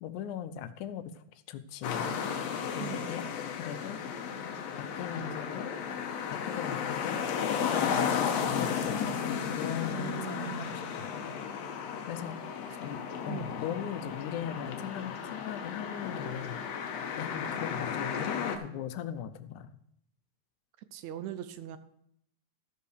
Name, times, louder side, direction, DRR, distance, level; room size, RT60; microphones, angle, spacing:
voice 1, 0.0-1.2 1.5-2.1 2.7-3.3 3.6-4.0 4.8-5.8 6.3-9.0 9.4-10.8 12.1-12.4 12.8-16.6 17.2-19.7, left 9 dB, 90° left, 12 dB, 2.2 m, -39 dB
sound 1, 1.8-18.6, left 7 dB, 70° left, 2.0 m, -34 dB
voice 2, 2.8-3.1 9.9-10.7 12.7-12.8 13.3-13.5 20.9-21.8, right 10 dB, 75° right, 12 dB, 1.9 m, -40 dB
13.5 x 5.5 x 6.5 m, 0.72 s
omnidirectional pair, 3.4 m